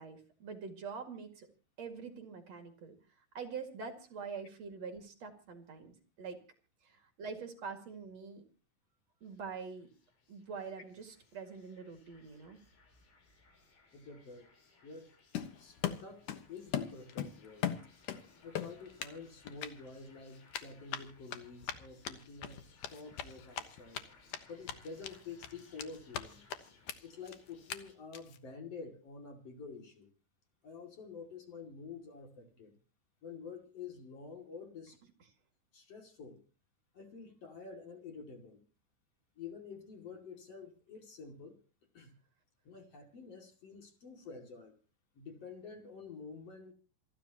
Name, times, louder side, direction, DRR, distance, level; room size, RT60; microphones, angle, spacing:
voice 1, 0.0-1.5 1.8-3.0 3.3-6.4 6.8-8.4 9.2-9.9 10.3-12.6, right 5 dB, 45° right, 6 dB, 2.5 m, -45 dB
sound 1, 9.2-28.0, left 4 dB, 85° left, 6.7 m, -64 dB
voice 2, 13.9-14.5 14.8-15.1 15.6-17.7 18.4-24.0 24.5-26.4 27.0-30.1 30.6-32.7 33.2-35.0 35.7-36.4 36.9-38.6 39.4-41.6 41.9-42.1 42.6-44.7 45.1-46.7, left 5 dB, 40° left, 4 dB, 2.8 m, -49 dB
Run, 15.3-16.4 16.7-18.2 18.5-19.2 19.5-19.7 20.5-24.0 24.3-24.4 24.7-25.1 25.4-26.2 26.5-26.6 26.9-27.0 27.3-27.4 27.7-27.8 28.1-28.4, left 10 dB, 70° left, 2.0 m, -38 dB
28.0 x 12.5 x 2.9 m, 0.36 s
omnidirectional pair, 5.3 m